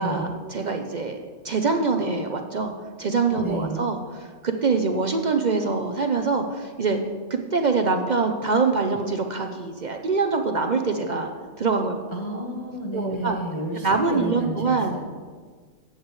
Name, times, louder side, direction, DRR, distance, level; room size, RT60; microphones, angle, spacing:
voice 1, 0.0-2.7 3.0-7.0 7.3-11.3 11.6-12.0 12.3-12.5 12.9-13.4 13.7-15.0, right 4 dB, 45° right, 5 dB, 0.7 m, -24 dB
voice 2, 3.4-3.8 12.1-15.0, right 1 dB, 25° left, -3 dB, 1.1 m, -31 dB
15.0 x 8.2 x 3.2 m, 1.5 s
omnidirectional pair, 1.2 m